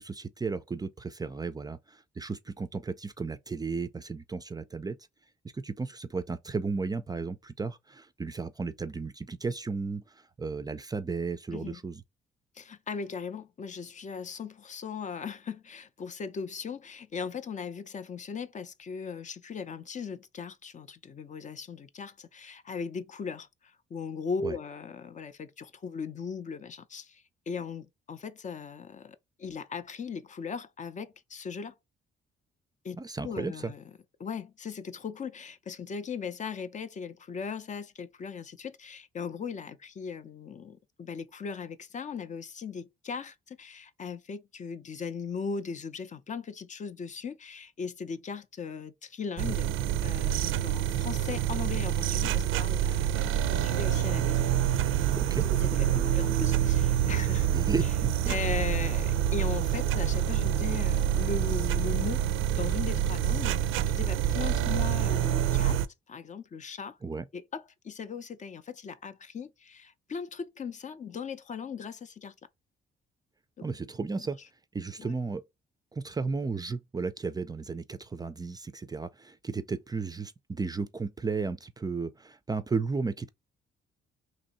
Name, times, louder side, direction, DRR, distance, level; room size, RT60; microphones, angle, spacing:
voice 1, 0.0-5.0 5.5-12.0 24.4-24.5 33.0-33.7 55.2-55.5 57.5-58.3 67.0-67.3 73.6-74.4 74.7-75.4 75.9-83.3, right 4 dB, 20° right, 0.4 m, -34 dB
voice 2, 12.5-31.7 32.8-33.0 33.2-33.8 34.2-49.7 50.0-54.4 55.4-57.5 58.3-62.2 62.5-65.8 66.1-67.0 67.3-72.3 73.6-73.7 74.2-74.3 75.0-75.1, left 5 dB, 40° left, 0.5 m, -38 dB
sound 1, 49.4-65.9, right 10 dB, 85° right, 0.4 m, -27 dB
3.0 x 2.6 x 4.0 m
cardioid pair, 90°, 20 cm